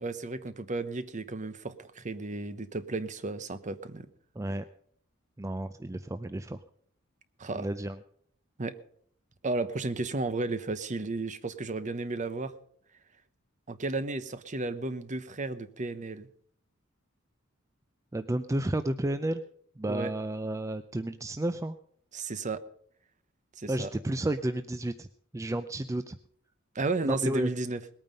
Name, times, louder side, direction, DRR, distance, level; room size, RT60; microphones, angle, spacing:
voice 1, 0.0-4.1 7.4-7.7 8.6-8.8 9.4-12.5 13.7-16.3 19.9-20.1 22.1-22.6 23.6-23.9 26.7-27.8, right 3 dB, 35° right, 12 dB, 0.9 m, -33 dB
voice 2, 5.4-6.6 7.5-8.0 18.1-19.4 19.8-21.8 23.7-25.1 25.3-26.2 27.0-27.5, right 1 dB, 15° right, 11 dB, 0.4 m, -31 dB
19.5 x 9.0 x 5.3 m, 0.64 s
head